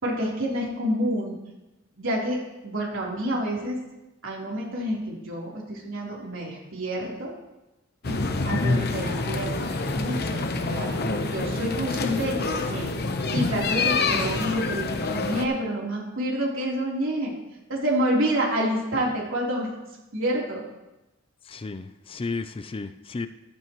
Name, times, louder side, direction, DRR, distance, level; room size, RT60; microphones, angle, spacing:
voice 1, 0.0-1.4 2.0-3.8 4.2-7.3 8.0-12.9 13.3-17.3 17.7-19.7 20.1-20.6, equal, 75° right, -3 dB, 3.4 m, -28 dB
sound 1, 8.0-15.4, left 3 dB, 50° left, 0.9 m, -27 dB
voice 2, 21.4-23.3, left 3 dB, 25° left, 11 dB, 0.4 m, -33 dB
14.0 x 12.5 x 3.0 m, 1.0 s
head